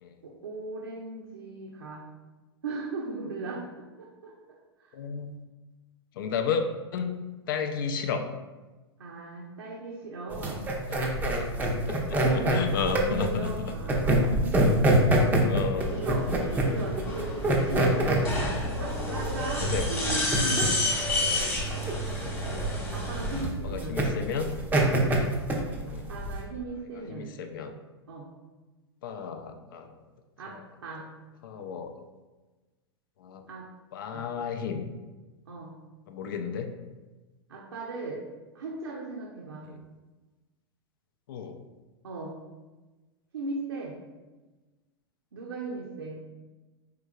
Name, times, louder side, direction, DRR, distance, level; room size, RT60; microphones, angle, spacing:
voice 1, 0.2-2.0 2.6-4.9 9.0-10.6 12.2-14.8 15.9-16.3 16.6-18.2 18.8-20.8 22.9-24.0 24.8-25.0 25.9-27.3 28.1-28.3 30.4-31.1 33.5-33.7 34.1-34.3 35.5-35.7 37.5-38.2 38.5-39.7 42.0-42.4 43.3-44.0 45.3-46.2, right 3 dB, 70° right, -2 dB, 0.6 m, -38 dB
voice 2, 4.9-5.4 6.2-6.6 6.9-8.2 10.9-11.1 11.4-12.0 12.3-13.7 15.4-15.9 18.4-18.6 19.4-20.2 21.3-21.5 22.2-22.3 23.6-24.6 25.8-26.1 27.1-27.7 29.0-29.9 31.4-31.9 33.2-33.4 33.9-34.9 36.1-36.7 39.7-39.8 41.3-41.6, left 6 dB, 55° left, 6 dB, 0.4 m, -33 dB
sound 1, 10.3-26.5, right 1 dB, 15° right, 0.5 m, -26 dB
sound 2, 15.8-23.4, left 1 dB, 15° left, 1.1 m, -31 dB
4.6 x 3.3 x 2.3 m, 1.2 s
figure-of-eight pair, 95°, 14 cm